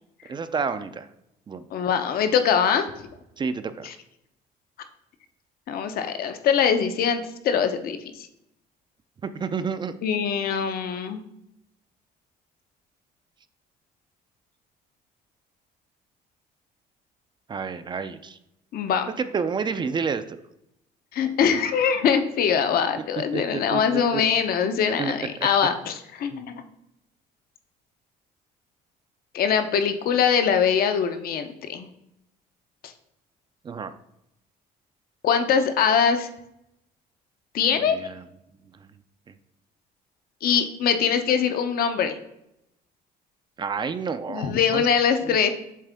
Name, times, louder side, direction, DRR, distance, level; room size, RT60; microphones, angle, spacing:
voice 1, 0.3-1.1 1.5-1.6 3.4-3.9 9.3-9.9 17.5-18.4 19.2-20.4 23.3-24.2 25.0-25.1 26.3-26.4 33.6-33.9 37.9-38.2 43.6-44.9 45.2-45.4, right 5 dB, 25° right, 11 dB, 0.4 m, -29 dB
voice 2, 1.7-2.9 3.8-3.9 5.7-8.3 10.0-11.2 18.7-19.1 21.1-26.6 29.3-31.9 35.2-36.3 37.5-38.0 40.4-42.2 44.3-45.5, left 7 dB, 60° left, 8 dB, 0.7 m, -23 dB
7.6 x 3.6 x 3.4 m, 0.83 s
cardioid pair, 110°, 17 cm